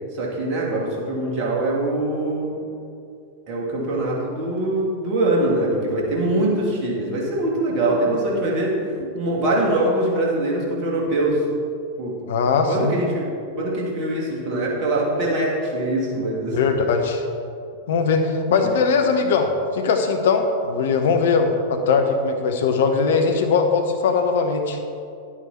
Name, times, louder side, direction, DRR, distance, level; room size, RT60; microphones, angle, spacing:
voice 1, 0.1-2.6 3.5-8.8 9.1-11.4 12.0-12.2 12.7-13.3 13.6-16.6 18.6-18.7, right 1 dB, 40° right, -3 dB, 2.7 m, -23 dB
voice 2, 12.3-12.9 16.5-17.2 17.9-24.8, left 5 dB, 60° left, 5 dB, 1.0 m, -20 dB
11.0 x 8.5 x 4.5 m, 2.5 s
figure-of-eight pair, 90°, 0 cm